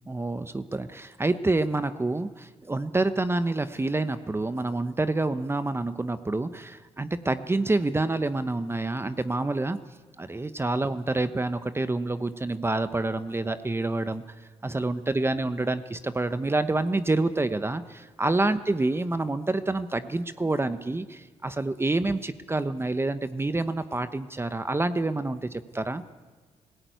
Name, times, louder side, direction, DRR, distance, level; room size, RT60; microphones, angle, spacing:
voice 1, 0.1-9.8 10.2-26.0, right 2 dB, 20° right, 11 dB, 1.0 m, -27 dB
17.0 x 17.0 x 9.4 m, 1.4 s
supercardioid pair, 60°, 13 cm